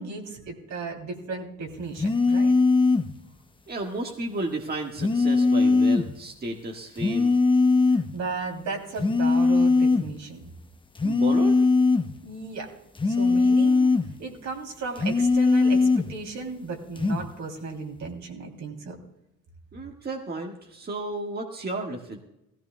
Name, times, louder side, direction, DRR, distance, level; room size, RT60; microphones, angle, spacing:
voice 1, 0.0-2.5 7.9-10.5 12.2-12.7 13.1-13.9 14.2-18.9, right 4 dB, 60° right, 3 dB, 2.9 m, -35 dB
sound 1, 2.0-3.1 5.0-6.1 7.0-8.1 9.0-10.1 11.0-12.1 13.0-14.1 15.0-16.1 17.0-17.3, left 3 dB, 15° left, 0.9 m, -20 dB
voice 2, 3.7-7.4 11.0-11.6 19.7-22.2, right 2 dB, 30° right, 1 dB, 1.6 m, -33 dB
17.0 x 15.0 x 2.2 m, 0.85 s
supercardioid pair, 70°, 32 cm